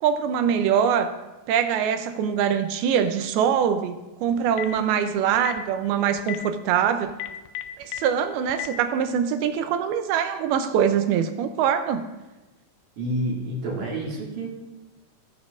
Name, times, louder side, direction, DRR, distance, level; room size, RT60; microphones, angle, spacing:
voice 1, 0.0-1.2 1.5-7.2 7.8-12.1, right 8 dB, 80° right, 8 dB, 2.5 m, -23 dB
Telephone, 4.3-4.8 5.4-5.6 6.2-6.4 7.1-8.0 8.5-8.7, left 14 dB, 85° left, 1.9 m, -31 dB
voice 2, 13.0-14.5, right 1 dB, 55° right, -3 dB, 2.7 m, -28 dB
18.5 x 8.3 x 2.5 m, 1.1 s
omnidirectional pair, 4.5 m